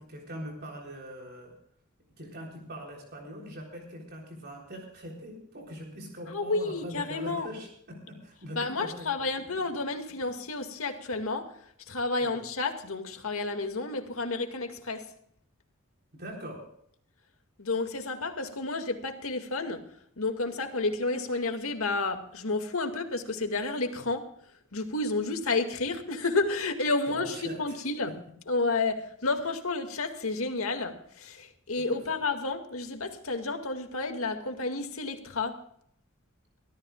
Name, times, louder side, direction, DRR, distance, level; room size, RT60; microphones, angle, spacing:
voice 1, 0.0-1.5 2.2-9.1 12.2-12.4 16.1-16.7 27.1-27.8 28.1-28.2 31.9-32.2, equal, 50° right, 0 dB, 3.7 m, -42 dB
voice 2, 6.3-7.5 8.5-11.5 11.9-15.1 17.6-19.8 20.2-24.3 24.7-28.1 28.5-35.6, left 3 dB, 90° left, 5 dB, 2.1 m, -31 dB
23.5 x 14.5 x 2.4 m, 0.67 s
head